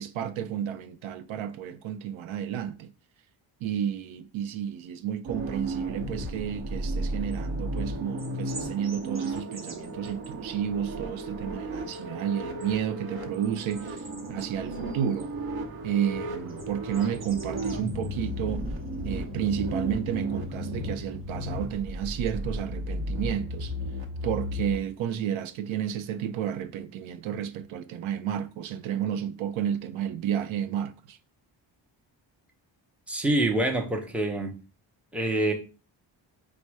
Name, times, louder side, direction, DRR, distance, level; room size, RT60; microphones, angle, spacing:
voice 1, 0.0-2.9 3.6-15.3 15.8-18.7 19.0-23.7 24.2-31.2, right 9 dB, 85° right, 0.6 m, -31 dB
sound 1, 5.3-24.8, equal, 55° right, 0.9 m, -34 dB
sound 2, 6.7-7.4 7.8-7.9 8.2-10.3 11.9-12.0 12.4-12.7 13.3-15.3 16.5-18.3 18.6-19.1 20.8-20.9 22.3-22.4, right 2 dB, 30° right, 1.0 m, -47 dB
voice 2, 33.1-34.6 35.1-35.5, right 1 dB, 5° right, 0.6 m, -26 dB
4.2 x 2.1 x 4.6 m
cardioid pair, 115°, 46 cm